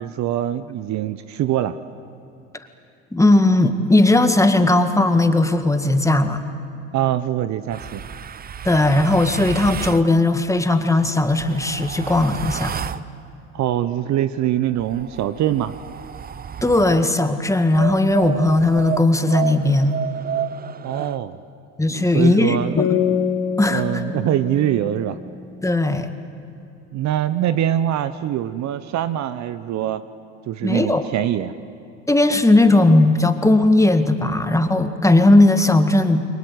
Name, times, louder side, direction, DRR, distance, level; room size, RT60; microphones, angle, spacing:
voice 1, 0.0-1.8 6.9-8.0 13.5-15.8 20.8-21.4 21.9-22.8 23.7-25.2 26.9-30.0 30.5-31.5, right 11 dB, 45° right, 13 dB, 1.0 m, -23 dB
voice 2, 3.1-6.4 8.6-12.7 16.6-20.0 21.8-23.2 23.6-24.0 25.6-26.1 30.6-31.0 32.1-36.2, left 2 dB, 10° left, 8 dB, 1.9 m, -17 dB
sound 1, 7.7-10.1 11.0-13.1 14.7-17.1 17.7-21.2, right 8 dB, 25° right, 0.8 m, -31 dB
sound 2, 22.8-26.2, left 7 dB, 40° left, 3.2 m, -26 dB
29.5 x 22.5 x 8.2 m, 2.8 s
hypercardioid pair, 80°, 38 cm